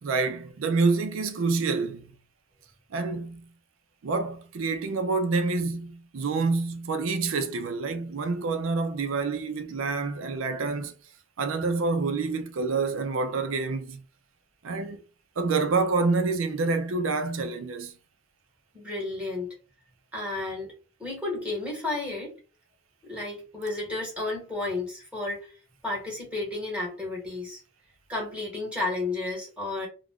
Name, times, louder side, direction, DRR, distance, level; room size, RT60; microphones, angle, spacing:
voice 1, 0.0-2.1 2.9-3.4 4.0-10.9 11.4-14.0 14.6-15.0 15.4-17.9, right 4 dB, 75° right, 0.5 m, -27 dB
voice 2, 18.7-19.5 20.1-20.7 21.0-22.3 23.0-25.5 25.8-27.6 28.1-29.9, left 2 dB, 5° right, 1.2 m, -32 dB
2.4 x 2.2 x 3.5 m
head